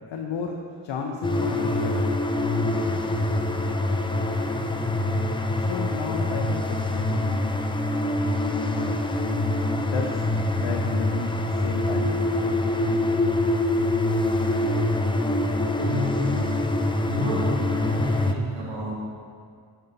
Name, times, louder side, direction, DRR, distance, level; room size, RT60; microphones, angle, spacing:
voice 1, 0.1-2.1 2.5-2.8 5.5-7.6 8.7-9.3 9.7-10.3 10.6-12.2, left 5 dB, 85° left, 1 dB, 0.7 m, -33 dB
sound 1, 1.2-18.3, left 1 dB, 10° left, 0.5 m, -25 dB
voice 2, 15.7-16.6 17.0-18.9, left 1 dB, 80° right, -5 dB, 2.2 m, -30 dB
9.4 x 5.6 x 4.0 m, 2.1 s
cardioid pair, 65°, 44 cm